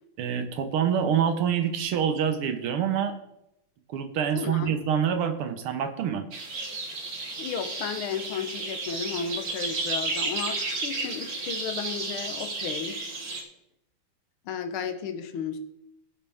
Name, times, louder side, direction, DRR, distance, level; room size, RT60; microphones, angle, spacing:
voice 1, 0.2-3.1 3.9-6.2, right 8 dB, 85° right, 7 dB, 1.9 m, -26 dB
voice 2, 4.3-4.7 7.4-13.0 14.5-15.6, left 6 dB, 80° left, 8 dB, 1.8 m, -33 dB
sound 1, 6.3-13.4, right 3 dB, 45° right, 1.7 m, -33 dB
16.5 x 5.7 x 3.5 m, 0.82 s
omnidirectional pair, 2.3 m